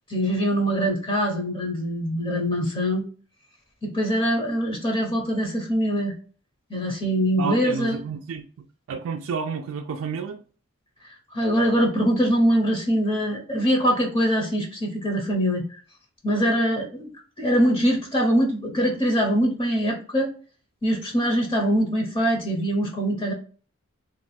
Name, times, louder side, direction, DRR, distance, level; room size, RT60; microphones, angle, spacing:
voice 1, 0.1-3.0 3.8-6.1 6.7-8.0 11.3-15.8 16.2-17.1 17.4-20.3 20.8-23.3, equal, 25° left, 0.7 m, -23 dB
voice 2, 7.4-10.4, right 6 dB, 75° right, 0.3 m, -31 dB
2.6 x 2.2 x 4.1 m
head